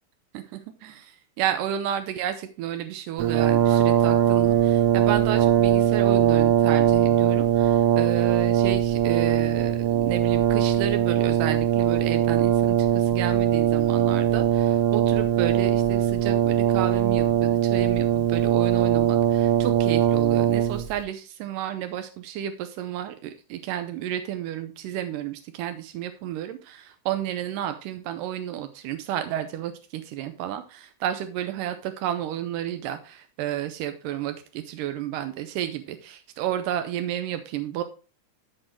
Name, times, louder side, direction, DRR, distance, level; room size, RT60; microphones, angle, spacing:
voice 1, 0.3-37.8, right 11 dB, 85° right, 8 dB, 2.2 m, -32 dB
Brass instrument, 3.2-21.0, right 11 dB, 65° right, 1.5 m, -21 dB
13.5 x 4.5 x 4.5 m, 0.36 s
omnidirectional pair, 3.9 m